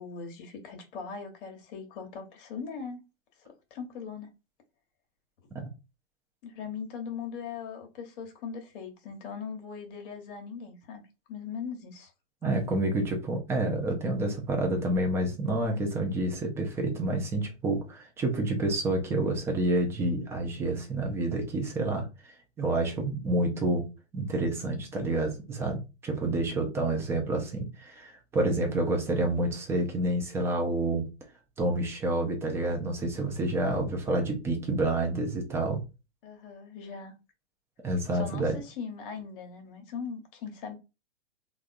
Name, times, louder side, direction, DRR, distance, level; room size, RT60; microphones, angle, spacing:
voice 1, 0.0-3.0 3.5-4.3 6.4-11.0 11.3-12.1 26.7-27.1 36.2-37.1 38.1-40.8, left 6 dB, 45° left, 1.0 m, -40 dB
voice 2, 12.4-22.0 22.6-23.8 24.1-31.1 31.6-35.8 37.8-38.6, right 2 dB, 10° right, 0.4 m, -28 dB
3.4 x 2.3 x 2.5 m
hypercardioid pair, 130°, 35 cm